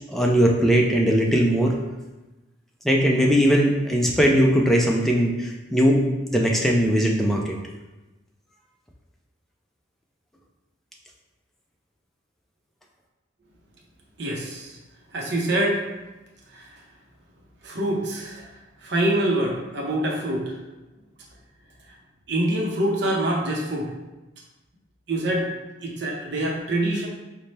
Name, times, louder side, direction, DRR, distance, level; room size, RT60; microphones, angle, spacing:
voice 1, 0.1-1.7 2.8-6.0 6.3-7.5, equal, ahead, -1 dB, 0.3 m, -19 dB
voice 2, 14.2-14.8 15.1-15.8 16.5-16.7 17.6-18.5 18.8-20.6 22.3-23.9 25.1-25.5 25.8-27.1, right 1 dB, 60° right, -1 dB, 0.6 m, -25 dB
4.0 x 2.1 x 3.2 m, 1.1 s
head